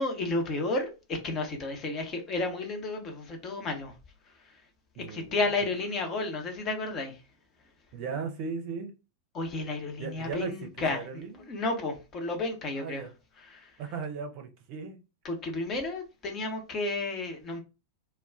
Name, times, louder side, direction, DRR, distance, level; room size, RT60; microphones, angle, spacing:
voice 1, 0.0-3.9 5.1-7.1 9.3-11.0 11.5-13.0 13.5-13.7 15.2-17.6, left 2 dB, 30° left, 0.8 m, -32 dB
voice 2, 4.9-5.4 7.9-8.9 10.0-11.5 12.7-13.1 13.8-15.0, right 5 dB, 45° right, 0.6 m, -37 dB
2.3 x 2.2 x 3.5 m
figure-of-eight pair, 90°, 0 cm